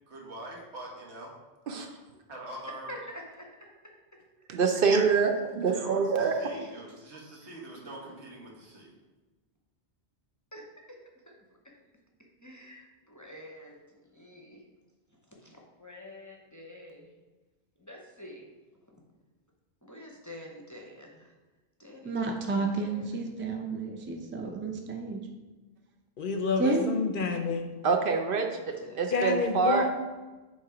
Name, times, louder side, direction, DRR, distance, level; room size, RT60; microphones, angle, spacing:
voice 1, 0.1-1.3 2.3-2.9 5.6-8.9, right 1 dB, 80° right, -2 dB, 1.5 m, -44 dB
voice 2, 2.9-3.5 10.5-11.0 11.3-11.4 12.4-14.6 15.3-17.1 17.8-18.5 18.9-19.0 19.8-21.3 21.8-23.1 28.8-29.1, left 1 dB, 20° left, -1 dB, 0.7 m, -47 dB
voice 3, 4.5-6.5 27.8-28.5 29.0-29.9, right 5 dB, 60° right, 4 dB, 0.7 m, -25 dB
voice 4, 22.0-25.2 26.6-26.8, right 3 dB, 20° right, 3 dB, 0.3 m, -31 dB
voice 5, 26.2-27.7 29.1-29.9, left 4 dB, 60° left, 5 dB, 0.6 m, -29 dB
7.4 x 3.0 x 4.8 m, 1.2 s
omnidirectional pair, 1.1 m